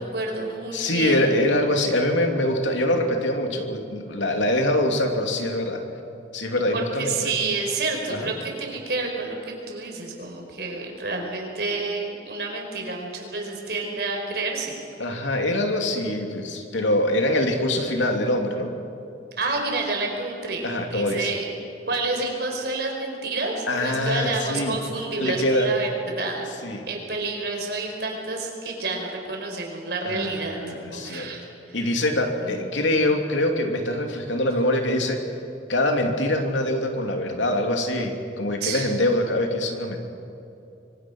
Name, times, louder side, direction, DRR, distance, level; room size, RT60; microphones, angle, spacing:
voice 1, 0.0-1.3 6.7-14.7 19.4-21.4 21.9-26.5 26.9-30.6 30.9-31.8 32.4-32.7 38.6-38.9, right 3 dB, 60° right, 1 dB, 4.9 m, -29 dB
voice 2, 0.7-5.8 6.3-7.3 8.1-8.3 15.0-18.7 20.6-21.3 23.7-24.8 25.2-25.7 26.6-26.8 30.0-31.3 31.7-35.2 35.7-40.0, left 1 dB, 85° left, 3 dB, 3.0 m, -24 dB
25.5 x 24.0 x 6.2 m, 2.9 s
head